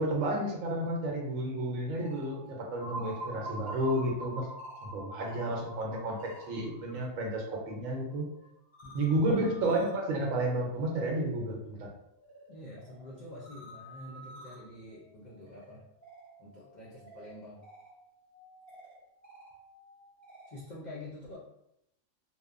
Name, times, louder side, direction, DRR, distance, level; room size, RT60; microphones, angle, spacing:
voice 1, 0.0-4.5 4.9-8.2 8.9-11.9, right 1 dB, 80° right, 0 dB, 1.0 m, -31 dB
sound 1, 1.8-7.0 7.4-20.6, equal, 15° right, 0.9 m, -54 dB
sound 2, 2.8-8.4, right 1 dB, 65° right, 0.4 m, -44 dB
voice 2, 8.8-9.8 12.5-15.8 16.4-17.6 20.5-21.4, left 1 dB, 75° left, -5 dB, 0.4 m, -46 dB
2.7 x 2.1 x 2.4 m, 0.78 s
omnidirectional pair, 1.4 m